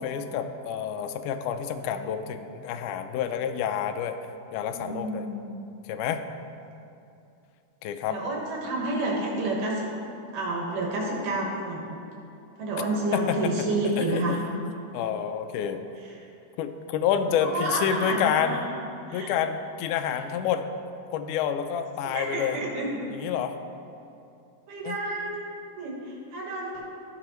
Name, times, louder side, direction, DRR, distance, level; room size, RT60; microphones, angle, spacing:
voice 1, 0.0-4.2 4.5-5.3 5.9-6.2 7.8-8.2 13.1-13.5 14.0-14.6 14.9-15.8 16.6-18.6 19.1-20.7 21.1-22.6 23.1-23.6 24.8-25.0, left 8 dB, 80° left, 7 dB, 2.0 m, -28 dB
voice 2, 4.6-5.6 8.1-9.8 10.3-12.0 12.6-14.4 17.4-18.6 19.1-19.3 22.1-23.1 24.7-25.4 25.8-26.7, right 2 dB, 85° right, -3 dB, 3.0 m, -29 dB
14.5 x 5.9 x 3.1 m, 2.7 s
omnidirectional pair, 3.6 m